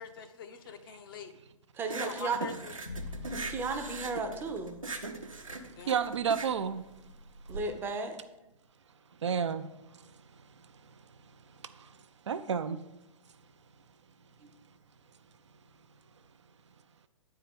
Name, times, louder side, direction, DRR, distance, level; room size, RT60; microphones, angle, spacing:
voice 1, 0.0-1.3 2.0-2.7 5.8-6.1, left 6 dB, 45° left, 6 dB, 0.8 m, -44 dB
voice 2, 1.7-2.4 3.3-4.8 7.5-8.2 14.4-14.5, right 4 dB, 15° right, 6 dB, 0.6 m, -34 dB
sound 1, 1.8-7.6, right 3 dB, 85° right, 0.9 m, -40 dB
sound 2, 2.9-7.1, left 3 dB, 70° left, 1.0 m, -47 dB
voice 3, 5.8-6.8 9.2-9.7 9.9-10.2 11.6-12.0 12.3-12.8, right 7 dB, 60° right, 10 dB, 0.5 m, -31 dB
9.2 x 4.6 x 5.2 m, 0.98 s
figure-of-eight pair, 120°, 17 cm